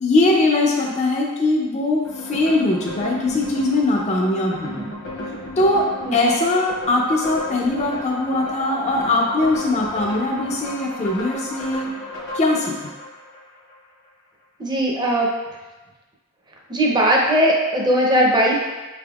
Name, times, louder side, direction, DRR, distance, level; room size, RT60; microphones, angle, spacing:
voice 1, 0.0-4.9 5.6-5.9 6.1-11.9 12.3-12.9, left 2 dB, 30° left, -1 dB, 0.4 m, -21 dB
sound 1, 2.0-13.8, left 1 dB, 65° left, 1.0 m, -34 dB
voice 2, 6.0-6.3 14.6-15.3 16.7-18.5, equal, 20° right, -2 dB, 0.6 m, -18 dB
5.5 x 3.4 x 2.3 m, 1.2 s
head